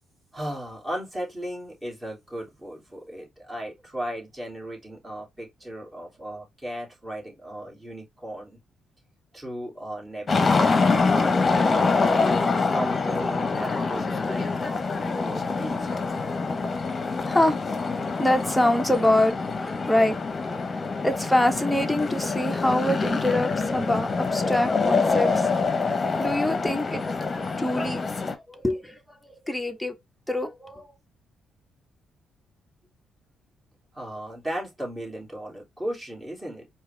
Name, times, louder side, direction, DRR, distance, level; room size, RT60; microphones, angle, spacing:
voice 1, 0.3-8.6 9.3-15.9 33.9-36.7, right 1 dB, 15° right, 3.1 m, -36 dB
sound 1, 10.3-28.4, left 4 dB, 35° left, 1.0 m, -25 dB
voice 2, 16.6-17.6 18.2-20.6 20.9-25.5 25.9-27.1 27.4-28.0 28.3-29.0 29.4-29.9 30.3-30.9, left 1 dB, 5° left, 1.0 m, -25 dB
4.6 x 2.9 x 3.4 m
cardioid pair, 90°, 0 cm